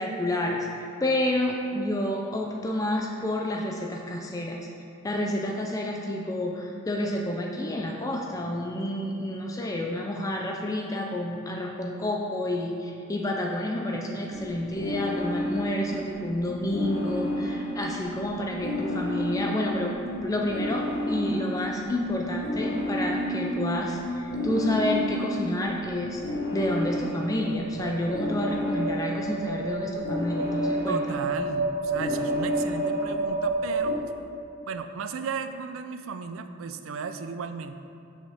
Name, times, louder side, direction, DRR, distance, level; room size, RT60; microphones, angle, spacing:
voice 1, 0.0-4.6 5.0-26.2 26.5-31.0, left 1 dB, 15° left, 0 dB, 0.4 m, -29 dB
sound 1, 14.3-34.0, equal, 60° left, 1.2 m, -30 dB
voice 2, 30.8-34.0 34.7-37.7, right 5 dB, 85° right, 9 dB, 0.4 m, -35 dB
7.6 x 6.2 x 3.5 m, 2.5 s
head